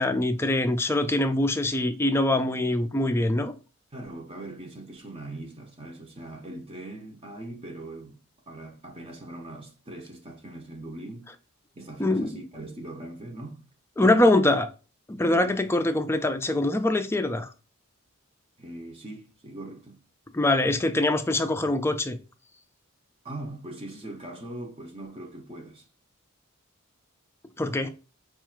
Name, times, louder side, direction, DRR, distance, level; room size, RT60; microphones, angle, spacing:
voice 1, 0.0-3.5 12.0-12.4 14.0-14.7 15.1-17.5 20.3-22.2 27.6-27.9, left 1 dB, 10° left, 0.4 m, -23 dB
voice 2, 3.9-8.2 8.5-11.3 11.7-13.6 14.0-14.4 15.2-15.5 18.6-20.0 23.2-25.9, right 1 dB, 25° right, 0.7 m, -40 dB
4.6 x 2.4 x 4.4 m
head